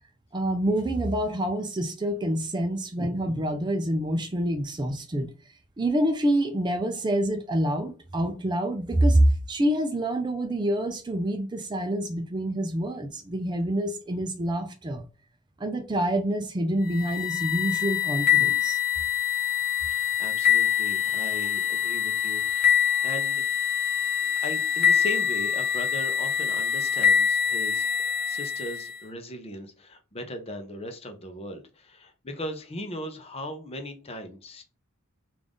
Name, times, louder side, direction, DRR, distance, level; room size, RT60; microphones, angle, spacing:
voice 1, 0.3-5.3 5.8-15.0 15.6-18.8, right 1 dB, 20° right, 0.4 m, -26 dB
sound 1, 16.9-29.0, left 8 dB, 45° left, 0.9 m, -25 dB
voice 2, 19.9-22.7 23.0-23.7 24.4-27.9 28.3-34.6, left 1 dB, 30° left, 0.6 m, -38 dB
3.6 x 2.5 x 3.5 m
head